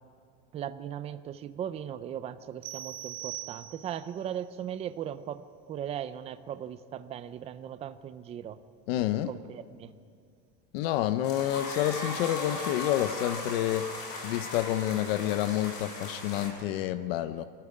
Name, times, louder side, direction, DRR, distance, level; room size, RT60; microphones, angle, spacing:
voice 1, 0.5-8.6 9.3-9.9, right 10 dB, 20° right, 12 dB, 0.5 m, -38 dB
sound 1, 2.6-4.1, right 14 dB, 50° right, 1.4 m, -41 dB
voice 2, 8.9-9.3 10.7-17.5, left 12 dB, 70° left, 11 dB, 0.8 m, -29 dB
sound 2, 11.2-16.5, left 2 dB, 35° left, 6.2 m, -38 dB
25.0 x 14.5 x 8.6 m, 2.3 s
cardioid pair, 165°, 30 cm